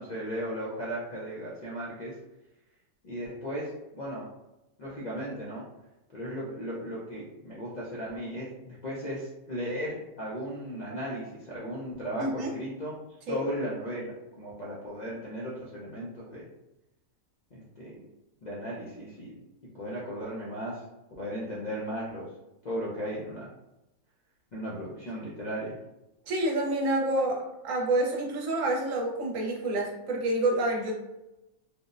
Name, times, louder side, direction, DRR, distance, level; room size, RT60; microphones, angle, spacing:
voice 1, 0.0-2.1 3.0-4.2 4.8-5.6 6.1-13.0 13.3-16.5 17.5-18.0 18.4-19.4 19.7-20.8 21.2-22.2 22.6-23.5 24.5-25.8, equal, 65° left, -6 dB, 0.4 m, -36 dB
voice 2, 12.2-12.5 13.3-13.4 26.3-30.9, right 1 dB, 70° right, -1 dB, 1.0 m, -28 dB
3.4 x 2.0 x 2.5 m, 0.94 s
omnidirectional pair, 1.5 m